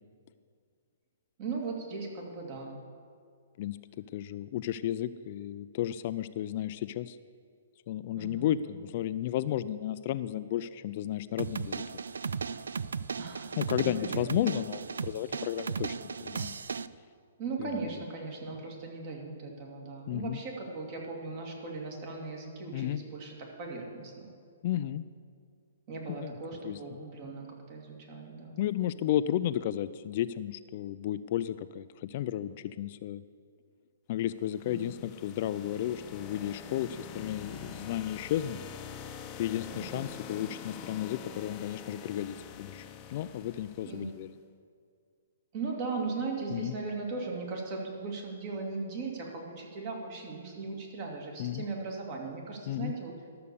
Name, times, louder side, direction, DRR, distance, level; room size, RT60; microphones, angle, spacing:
voice 1, 1.4-2.7 8.2-8.8 13.2-14.4 17.4-24.3 25.9-28.6 34.7-35.0 39.7-40.4 43.9-44.1 45.5-53.2, right 4 dB, 40° right, 1 dB, 2.3 m, -38 dB
voice 2, 3.6-7.2 7.9-11.8 13.6-16.5 17.6-17.9 20.1-20.4 22.7-23.0 24.6-25.0 26.2-26.3 26.6-26.8 28.6-33.2 34.1-38.6 39.4-44.3 46.5-46.8 51.4-51.6 52.7-52.9, left 12 dB, 45° left, 13 dB, 0.3 m, -33 dB
sound 1, 11.4-16.9, right 5 dB, 90° right, 0.3 m, -36 dB
sound 2, 34.4-44.2, left 7 dB, 25° left, 0.7 m, -45 dB
13.0 x 6.7 x 6.9 m, 2.2 s
hypercardioid pair, 150°, 0 cm